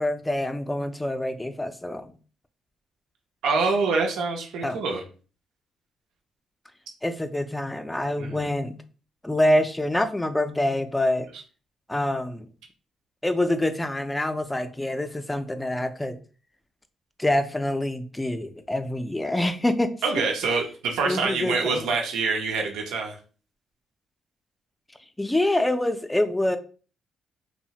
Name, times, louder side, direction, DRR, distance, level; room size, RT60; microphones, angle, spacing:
voice 1, 0.0-2.1 4.6-4.8 7.0-8.8 9.2-11.3 11.9-12.5 13.2-16.2 17.2-19.9 21.0-21.9 25.2-26.6, left 1 dB, 10° left, 0.3 m, -26 dB
voice 2, 3.4-5.0 8.2-8.5 20.0-23.2, right 4 dB, 90° right, 0.6 m, -25 dB
3.0 x 2.0 x 2.8 m
cardioid pair, 90°, 0 cm